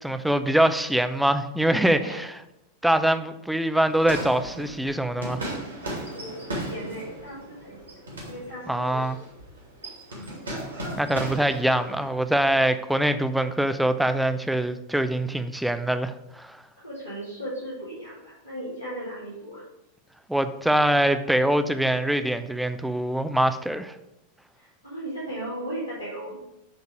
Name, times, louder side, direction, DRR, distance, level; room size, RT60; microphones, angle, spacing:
voice 1, 0.0-2.4 2.8-5.5 8.7-9.2 11.0-16.6 20.3-23.9, right 1 dB, ahead, 10 dB, 0.5 m, -24 dB
sound 1, 3.9-12.1, right 1 dB, 75° right, 2.9 m, -36 dB
voice 2, 6.1-8.0 8.2-9.1 16.8-19.6 24.5-26.4, right 1 dB, 90° left, -12 dB, 2.9 m, -36 dB
9.1 x 4.0 x 5.1 m, 0.89 s
figure-of-eight pair, 90°, 0 cm